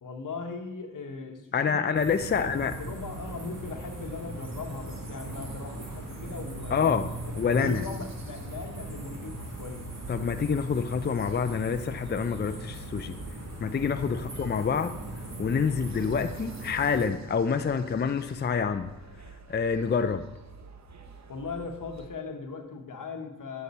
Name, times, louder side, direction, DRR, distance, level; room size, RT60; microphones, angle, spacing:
voice 1, 0.0-2.0 2.3-6.8 7.4-9.9 14.1-14.3 21.3-23.6, left 4 dB, 80° left, 4 dB, 1.1 m, -39 dB
voice 2, 1.5-2.7 6.7-7.1 7.4-7.8 10.1-13.2 13.6-14.9 15.4-18.9 19.5-20.2, left 6 dB, 35° left, 8 dB, 0.4 m, -27 dB
sound 1, 1.9-17.0, right 2 dB, 85° right, 2.1 m, -39 dB
sound 2, 2.2-22.1, right 4 dB, 60° right, 0.7 m, -50 dB
8.2 x 5.8 x 4.1 m, 1.0 s
wide cardioid pair, 70°, 31 cm